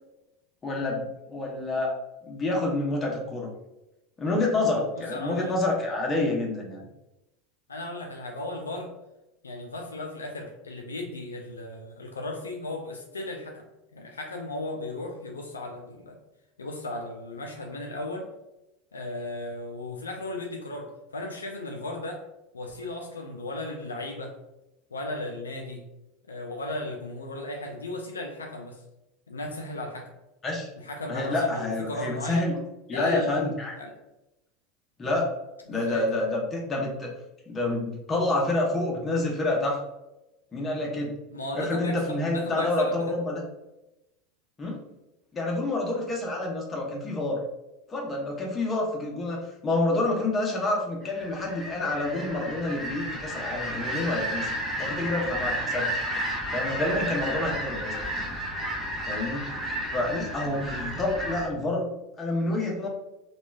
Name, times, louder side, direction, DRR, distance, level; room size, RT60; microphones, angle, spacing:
voice 1, 0.6-1.9 2.3-3.5 4.2-6.8 30.4-30.7 31.1-32.6 32.9-33.7 35.0-35.3 35.7-37.1 37.5-39.8 40.5-41.2 41.5-43.4 44.6-44.8 45.3-47.4 47.9-54.5 54.8-56.0 56.5-57.9 59.1-59.5 59.9-61.9 62.2-62.9, left 2 dB, 25° left, -1 dB, 0.8 m, -28 dB
voice 2, 4.9-5.5 7.7-8.9 9.4-13.7 13.9-16.2 16.6-18.3 18.9-22.2 22.5-24.4 24.9-25.8 26.3-28.8 29.3-30.1 30.8-32.5 32.9-33.4 33.8-33.9 35.7-36.2 41.3-43.0, left 2 dB, 85° left, 2 dB, 0.3 m, -36 dB
sound 1, 51.1-61.5, equal, 20° right, 0.8 m, -32 dB
2.9 x 2.3 x 2.3 m, 0.93 s
figure-of-eight pair, 80°, 0 cm